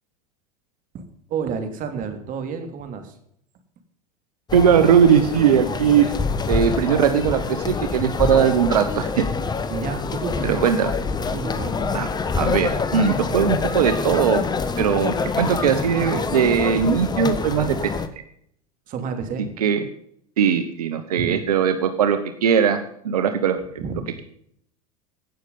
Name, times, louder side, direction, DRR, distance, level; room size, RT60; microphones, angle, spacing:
voice 1, 0.9-3.2 9.7-10.6 11.2-11.8 18.9-19.5 21.2-21.4 23.8-24.0, right 6 dB, 45° right, 7 dB, 2.8 m, -30 dB
sound 1, 4.5-18.1, left 4 dB, 20° left, 1.3 m, -26 dB
voice 2, 4.5-6.1 6.5-9.2 10.4-10.9 11.9-12.1 12.3-14.4 14.8-17.8 19.6-19.9 20.4-22.8 23.0-23.6, right 8 dB, 90° right, 9 dB, 1.0 m, -19 dB
17.0 x 6.6 x 5.4 m, 0.69 s
hypercardioid pair, 95°, 19 cm